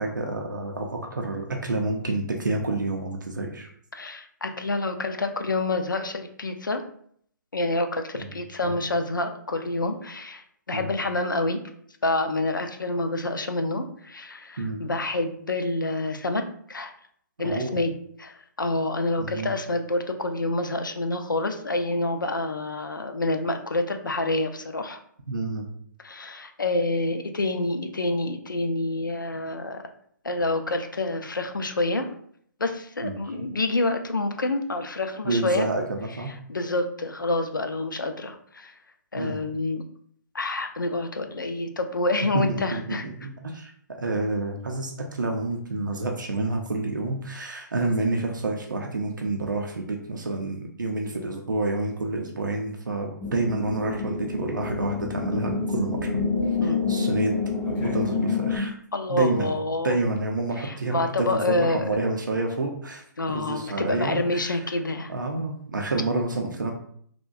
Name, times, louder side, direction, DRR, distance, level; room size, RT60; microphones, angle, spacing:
voice 1, 0.0-3.7 8.1-8.3 8.6-8.7 10.7-10.9 14.6-14.8 17.4-17.8 19.2-19.5 25.3-25.7 33.0-33.1 35.2-36.3 39.2-39.4 42.3-43.7 44.0-56.1 56.6-57.3 57.8-58.7 59.1-59.5 59.8-64.6 65.1-66.7, right 2 dB, 80° right, 1 dB, 0.4 m, -28 dB
voice 2, 3.9-6.8 7.5-11.6 12.0-16.4 16.7-16.9 17.4-17.9 18.2-25.0 26.0-29.8 30.2-32.1 32.6-35.7 36.5-38.7 39.1-39.8 40.3-43.0 56.6-56.8 58.9-60.0 60.6-62.0 63.2-65.1, left 2 dB, 85° left, 6 dB, 0.4 m, -27 dB
sound 1, 53.2-58.6, left 4 dB, 20° left, 0.5 m, -27 dB
2.6 x 2.1 x 2.3 m, 0.64 s
figure-of-eight pair, 130°, 10 cm